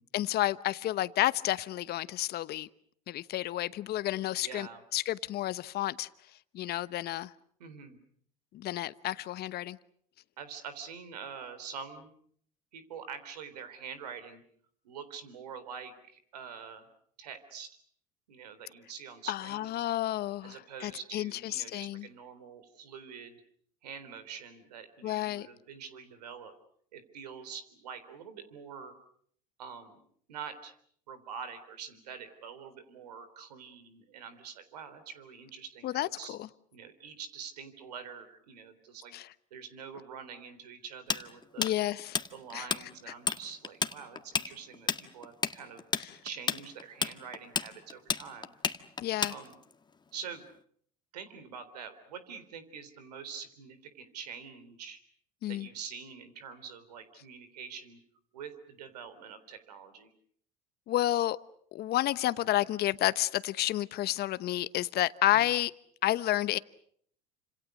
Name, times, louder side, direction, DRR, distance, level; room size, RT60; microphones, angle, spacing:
voice 1, 0.1-2.7 3.1-6.1 6.5-7.3 8.5-9.8 19.3-22.1 25.0-25.5 35.8-36.5 39.1-39.3 41.6-42.2 42.5-42.7 46.0-46.1 49.0-49.3 55.4-55.7 60.9-61.4 61.7-65.7 66.0-66.6, left 14 dB, 55° left, 1.1 m, -30 dB
voice 2, 4.4-4.8 7.6-8.0 10.4-12.1 12.7-14.4 14.8-16.9 17.2-17.7 18.3-19.8 20.4-23.4 23.8-26.5 26.9-29.0 29.6-30.0 30.3-30.7 31.1-36.4 36.7-39.2 39.5-41.7 42.3-45.8 46.2-48.5 49.3-49.6 50.1-50.4 51.1-55.0 55.5-58.0 58.3-60.1 65.3-65.5, right 6 dB, 90° right, 3.7 m, -45 dB
Tools, 41.1-42.8 43.1-43.4 43.6-49.7, left 5 dB, 20° left, 1.7 m, -31 dB
29.0 x 27.0 x 6.5 m
hypercardioid pair, 75°, 20 cm